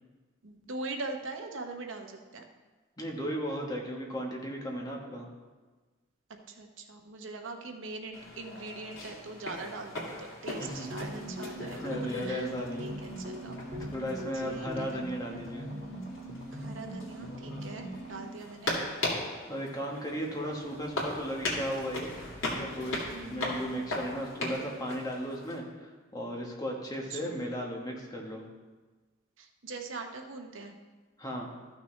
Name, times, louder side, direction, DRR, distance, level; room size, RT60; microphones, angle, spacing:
voice 1, 0.4-2.4 6.5-12.5 12.8-13.6 14.3-15.0 16.5-18.8 23.1-23.5 27.1-27.4 29.4-30.7, right 3 dB, 75° right, 4 dB, 0.8 m, -42 dB
voice 2, 3.0-5.3 10.6-10.9 11.8-13.0 13.9-15.7 19.5-22.1 22.5-28.4 31.2-31.5, equal, 20° left, -1 dB, 1.2 m, -36 dB
sound 1, 8.1-25.6, left 1 dB, 80° left, 2.3 m, -39 dB
sound 2, 10.7-18.3, equal, 40° right, 1.8 m, -40 dB
sound 3, 19.3-24.8, equal, 50° left, 1.7 m, -53 dB
13.5 x 6.0 x 3.2 m, 1.3 s
head